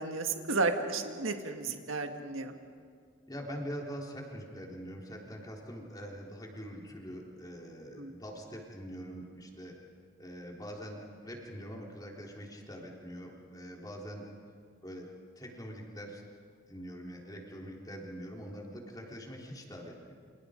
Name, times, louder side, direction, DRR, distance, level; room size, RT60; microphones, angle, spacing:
voice 1, 0.0-2.5 8.0-8.1, right 3 dB, 90° right, 5 dB, 1.9 m, -33 dB
voice 2, 3.3-9.8 10.2-14.3 14.8-15.1 15.4-16.2 16.7-20.2, equal, 20° left, -1 dB, 3.8 m, -44 dB
29.5 x 27.0 x 5.2 m, 2.2 s
head